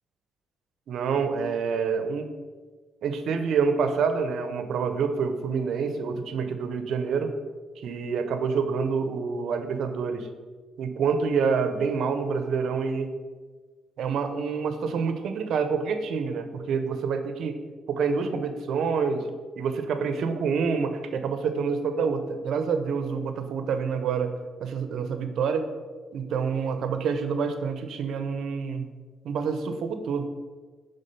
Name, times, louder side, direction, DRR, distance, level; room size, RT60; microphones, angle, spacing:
voice 1, 0.9-2.3 3.0-7.3 7.8-10.3 10.8-13.1 14.0-17.6 17.9-19.3 19.6-24.3 24.6-25.7 26.1-28.9 29.2-30.2, right 5 dB, 70° right, 8 dB, 0.6 m, -27 dB
5.5 x 3.5 x 5.3 m, 1.4 s
cardioid pair, 90°, 0 cm